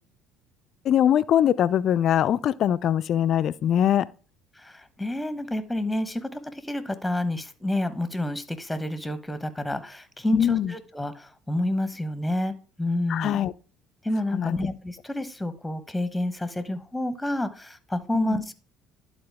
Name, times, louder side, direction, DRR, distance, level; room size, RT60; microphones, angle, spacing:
voice 1, 0.9-4.1 10.3-10.7 13.1-13.5 14.3-14.6 18.1-18.4, left 10 dB, 55° left, 0.3 m, -22 dB
voice 2, 4.5-13.4 14.0-18.5, left 1 dB, 5° left, 1.0 m, -29 dB
11.5 x 4.2 x 3.5 m
hypercardioid pair, 65°, 0 cm